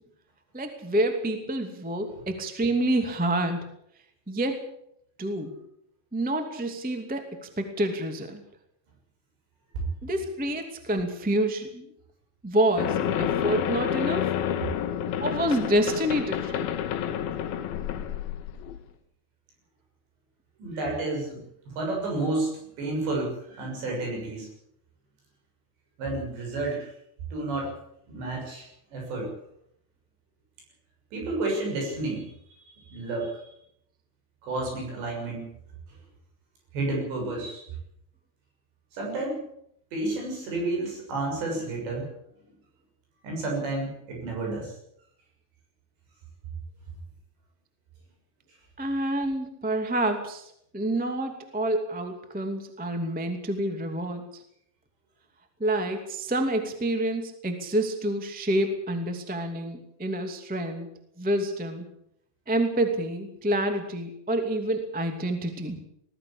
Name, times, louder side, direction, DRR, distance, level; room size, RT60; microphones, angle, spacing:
voice 1, 0.5-3.6 4.3-4.6 5.2-5.6 6.1-8.4 10.0-11.9 12.4-14.3 15.2-16.7 48.8-54.4 55.6-60.9 61.2-61.9 62.5-65.8, right 1 dB, 10° right, 6 dB, 0.4 m, -28 dB
sound 1, 12.8-18.8, left 9 dB, 70° left, 2.5 m, -29 dB
voice 2, 20.6-24.5 26.0-26.9 27.3-27.7 28.1-29.3 31.1-32.3 32.5-32.6 32.9-33.4 34.4-35.4 36.7-37.6 38.9-39.4 39.9-42.1 43.2-44.8, right 2 dB, 60° right, 0 dB, 8.7 m, -31 dB
20.5 x 15.0 x 8.8 m, 0.74 s
omnidirectional pair, 5.6 m